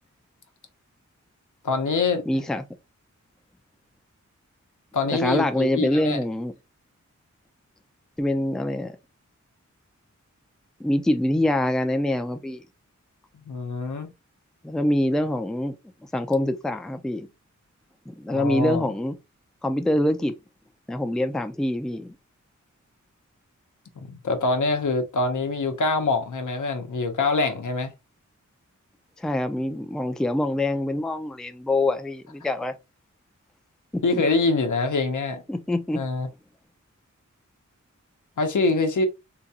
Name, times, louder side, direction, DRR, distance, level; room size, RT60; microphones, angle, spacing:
voice 1, 1.6-2.2 4.9-6.2 13.5-14.1 18.3-18.9 24.0-27.9 34.0-35.4 35.9-36.3 38.4-39.1, left 3 dB, 80° left, 0.7 m, -24 dB
voice 2, 2.3-2.6 5.1-6.5 8.2-9.0 10.8-12.6 14.6-15.7 16.1-17.3 18.1-19.2 19.6-20.3 20.9-22.1 29.2-32.7 33.9-34.2 35.5-36.0, left 1 dB, ahead, 0.4 m, -25 dB
3.8 x 2.2 x 2.8 m
wide cardioid pair, 80°, 30 cm